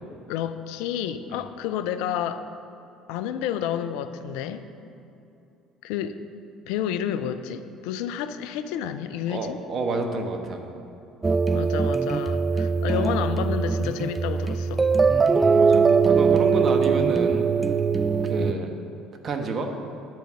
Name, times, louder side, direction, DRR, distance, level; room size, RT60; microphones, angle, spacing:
voice 1, 0.3-2.5 3.1-4.6 5.8-6.2 6.7-9.6 11.5-14.9 18.4-18.6, left 9 dB, 70° left, 11 dB, 0.4 m, -30 dB
voice 2, 9.3-10.7 15.1-17.4 18.2-18.8 19.2-19.7, right 3 dB, 45° right, 4 dB, 1.2 m, -30 dB
sound 1, 11.2-18.5, right 5 dB, 20° right, 0.3 m, -21 dB
9.4 x 5.1 x 7.5 m, 2.8 s
hypercardioid pair, 60°, 0 cm